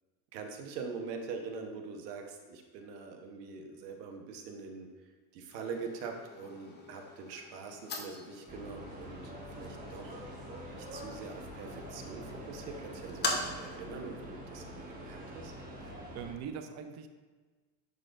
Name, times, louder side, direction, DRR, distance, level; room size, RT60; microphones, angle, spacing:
voice 1, 0.3-10.2 10.7-15.5, right 5 dB, 75° right, 3 dB, 1.2 m, -44 dB
sound 1, 5.5-13.8, left 3 dB, 20° left, 0.7 m, -42 dB
sound 2, 8.5-16.3, equal, 15° right, 1.2 m, -45 dB
voice 2, 15.8-17.1, right 7 dB, 35° right, 8 dB, 0.5 m, -42 dB
10.5 x 3.9 x 2.6 m, 1.3 s
supercardioid pair, 120°, 49 cm